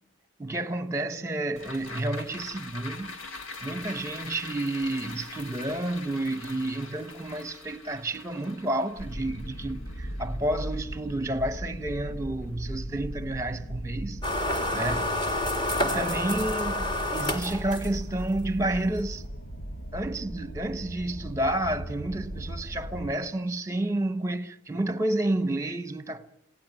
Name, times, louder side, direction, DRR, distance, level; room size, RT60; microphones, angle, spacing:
voice 1, 0.4-3.2 3.6-14.2 14.7-15.2 15.8-19.2 19.9-26.3, right 1 dB, 15° right, 1.0 m, -30 dB
sound 1, 1.6-12.1 12.4-12.5, left 3 dB, 90° left, 2.2 m, -43 dB
sound 2, 9.0-23.1, equal, 50° left, 1.5 m, -37 dB
sound 3, 14.2-18.2, left 1 dB, 20° left, 2.0 m, -29 dB
27.0 x 17.5 x 9.1 m
head